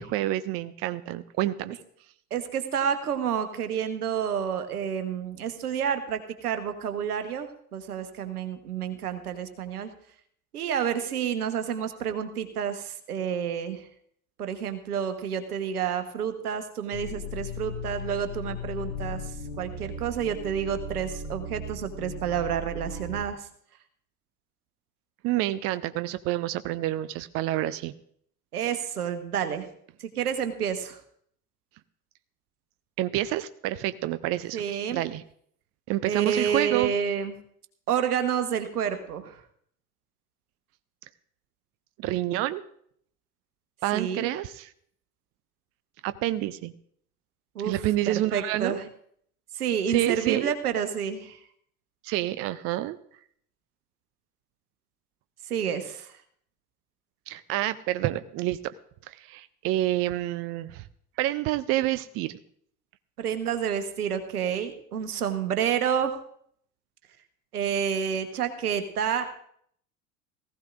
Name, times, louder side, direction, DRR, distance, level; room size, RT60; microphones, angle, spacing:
voice 1, 0.0-1.8 25.2-27.9 33.0-35.2 35.9-36.9 42.0-42.6 43.8-44.7 46.0-46.7 47.6-48.8 49.9-50.5 52.0-53.0 57.3-58.7 59.1-60.8 61.2-62.3, right 15 dB, 30° right, 14 dB, 0.4 m, -28 dB
voice 2, 2.3-9.9 10.5-13.9 14.4-19.2 19.6-23.5 28.5-29.6 30.0-31.0 34.5-35.0 36.0-37.3 37.9-39.4 43.9-44.3 47.5-47.7 48.1-48.8 49.5-51.4 55.5-56.1 63.2-66.1 67.5-69.3, right 8 dB, 75° right, 9 dB, 1.3 m, -29 dB
sound 1, 16.9-23.3, left 2 dB, 75° left, 1.3 m, -37 dB
19.0 x 15.0 x 2.5 m, 0.65 s
figure-of-eight pair, 70°, 46 cm